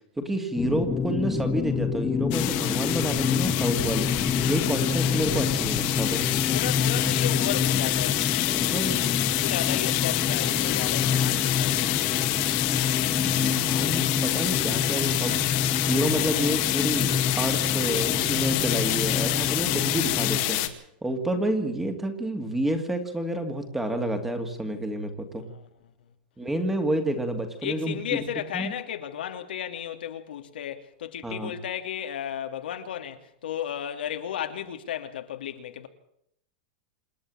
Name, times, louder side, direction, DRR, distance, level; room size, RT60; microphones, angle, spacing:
voice 1, 0.2-4.2 4.5-6.3 8.7-9.1 13.2-15.5 15.8-20.7 21.0-25.5 26.4-28.0 28.5-28.7 31.2-31.5, right 1 dB, 5° right, 2.4 m, -29 dB
sound 1, 0.5-20.4, left 6 dB, 10° left, 0.9 m, -28 dB
sound 2, 2.3-20.7, left 16 dB, 40° left, 2.0 m, -27 dB
voice 2, 6.1-8.9 9.4-12.1 25.4-25.7 27.6-35.9, left 10 dB, 85° left, 2.9 m, -34 dB
27.5 x 10.5 x 8.9 m
supercardioid pair, 170°, 5 cm